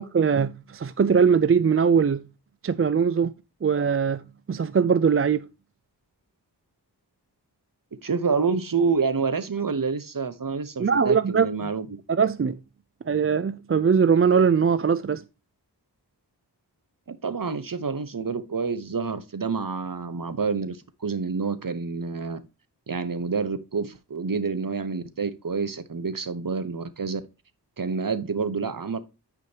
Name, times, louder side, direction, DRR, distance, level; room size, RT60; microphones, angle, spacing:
voice 1, 0.0-2.2 2.6-3.3 3.6-4.2 4.5-5.5 10.8-11.5 12.1-12.6 13.1-15.2, right 6 dB, 35° right, 0.4 m, -21 dB
voice 2, 8.0-12.0 17.1-22.4 22.9-27.2 27.8-29.0, right 5 dB, 50° right, 1.0 m, -28 dB
9.5 x 5.0 x 2.8 m
wide cardioid pair, 40°, 41 cm